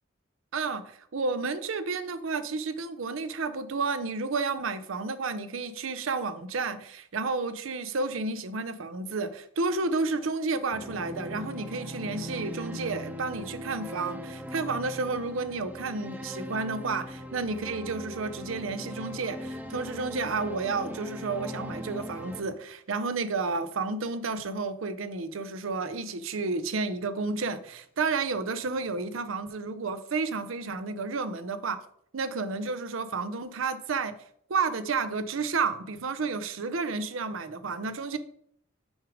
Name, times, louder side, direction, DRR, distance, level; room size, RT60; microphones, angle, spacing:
voice 1, 0.5-31.8 32.1-34.1 34.5-38.2, right 4 dB, 75° right, 12 dB, 0.6 m, -31 dB
sound 1, 10.7-22.4, equal, 10° right, 0.5 m, -40 dB
6.2 x 5.0 x 4.9 m, 0.66 s
head